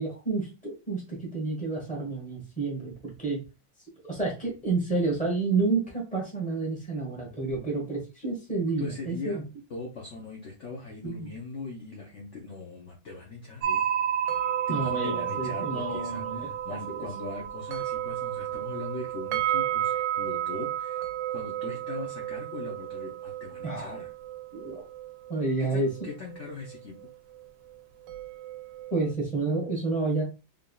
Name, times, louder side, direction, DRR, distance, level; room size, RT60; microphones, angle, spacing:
voice 1, 0.0-2.9 3.2-3.4 4.0-9.4 11.0-11.3 14.7-16.5 16.9-17.1 23.6-23.9 24.5-24.8 25.3-25.9 28.9-30.2, right 3 dB, 5° left, -3 dB, 1.4 m, -29 dB
voice 2, 8.8-9.4 9.7-13.8 14.2-14.4 14.7-24.1 25.6-26.9, left 3 dB, 55° left, -2 dB, 0.9 m, -40 dB
sound 1, 13.6-26.8 27.0-27.1 28.1-29.1, right 10 dB, 75° right, 1.2 m, -32 dB
3.7 x 3.7 x 2.3 m, 0.28 s
omnidirectional pair, 2.2 m